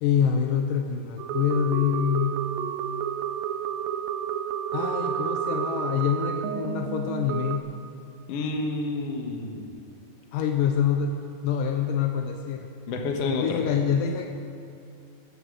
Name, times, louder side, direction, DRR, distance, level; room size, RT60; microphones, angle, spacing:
voice 1, 0.0-2.4 4.7-7.7 10.3-11.2 11.4-12.7 13.3-14.3, left 8 dB, 75° left, 4 dB, 2.2 m, -26 dB
sound 1, 1.2-7.6, right 9 dB, 80° right, 2.3 m, -30 dB
voice 2, 8.3-9.6 12.9-13.6, left 3 dB, 55° left, 2 dB, 2.1 m, -29 dB
14.0 x 11.5 x 6.5 m, 2.5 s
omnidirectional pair, 4.0 m